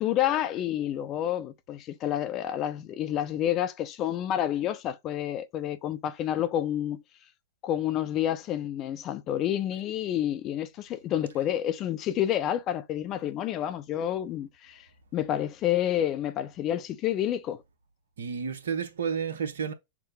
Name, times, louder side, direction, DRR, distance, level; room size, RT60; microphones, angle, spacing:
voice 1, 0.0-7.0 7.6-14.8 15.1-17.6, left 11 dB, 35° left, 0.6 m, -29 dB
voice 2, 18.2-19.7, right 6 dB, 70° right, 0.8 m, -31 dB
6.0 x 2.1 x 3.4 m
figure-of-eight pair, 100°, 0 cm